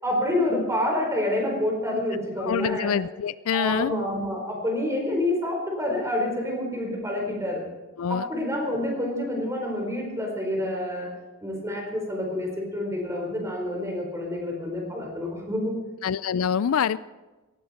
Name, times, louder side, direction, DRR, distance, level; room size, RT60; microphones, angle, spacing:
voice 1, 0.0-2.9 3.5-7.6 8.1-11.1 11.4-15.8, left 1 dB, 15° right, 0 dB, 4.5 m, -28 dB
voice 2, 2.4-3.9 8.0-8.3 16.0-17.0, left 7 dB, 65° left, 17 dB, 0.4 m, -26 dB
18.0 x 15.5 x 4.4 m, 1.2 s
head